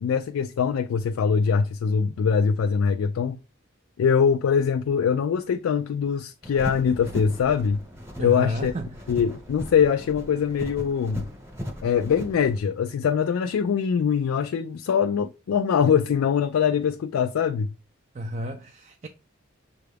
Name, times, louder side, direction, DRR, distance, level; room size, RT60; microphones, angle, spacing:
voice 1, 0.0-3.4 4.0-7.8 8.2-8.7 9.1-11.2 11.8-17.7, left 7 dB, 75° left, 0.3 m, -23 dB
sound 1, 6.4-12.6, equal, 15° right, 0.9 m, -38 dB
voice 2, 8.2-8.9 18.1-19.1, equal, 35° right, 0.4 m, -31 dB
6.6 x 2.4 x 3.4 m
head